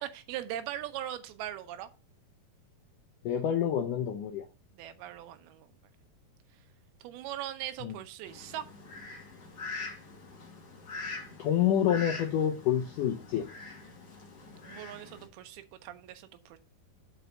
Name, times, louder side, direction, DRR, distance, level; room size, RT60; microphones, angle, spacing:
voice 1, 0.0-1.9 4.7-5.7 7.0-8.6 14.6-16.6, right 12 dB, 75° right, 2.6 m, -40 dB
voice 2, 3.2-4.5 7.8-7.9 11.4-13.5, left 10 dB, 90° left, 1.8 m, -28 dB
Fowl, 8.2-15.3, left 3 dB, 60° left, 1.0 m, -43 dB
6.1 x 5.4 x 6.7 m
omnidirectional pair, 4.8 m